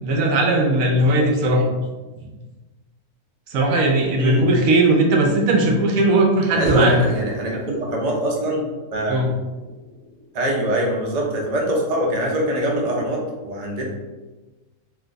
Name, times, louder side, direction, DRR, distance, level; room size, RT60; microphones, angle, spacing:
voice 1, 0.0-1.7 2.2-2.3 3.5-7.0 9.1-9.3, right 2 dB, 75° right, 1 dB, 1.0 m, -18 dB
voice 2, 6.5-8.7 8.9-9.2 10.3-13.8, right 1 dB, 45° right, -2 dB, 0.5 m, -23 dB
sound 1, 6.7-11.0, left 1 dB, 15° left, 0.5 m, -33 dB
2.6 x 2.2 x 3.8 m, 1.2 s
omnidirectional pair, 1.5 m